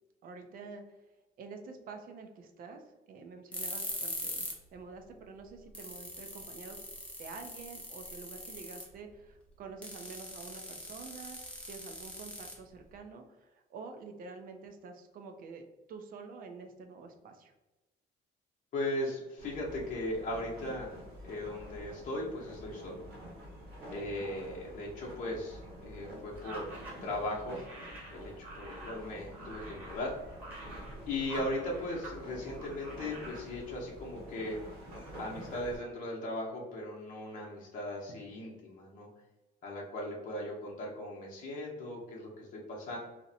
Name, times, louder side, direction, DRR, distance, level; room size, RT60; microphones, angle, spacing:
voice 1, 0.2-1.0 1.4-6.8 7.2-17.5 23.9-24.3 40.4-40.5, right 4 dB, 55° right, 5 dB, 0.4 m, -48 dB
sound 1, 3.5-4.6 4.9-5.0 5.5-5.6 5.7-9.0 9.8-13.0, left 1 dB, 5° left, 0.6 m, -41 dB
voice 2, 18.7-21.0 21.2-23.0 23.9-26.7 27.0-27.6 28.1-30.1 31.1-34.6 35.2-39.1 39.6-43.0, left 1 dB, 50° left, -3 dB, 0.7 m, -38 dB
sound 2, 19.4-35.8, equal, 90° right, 1.0 m, -48 dB
sound 3, 26.4-32.2 32.5-33.4, right 2 dB, 10° right, 1.0 m, -48 dB
2.6 x 2.0 x 2.6 m, 1.1 s
cardioid pair, 110°, 17 cm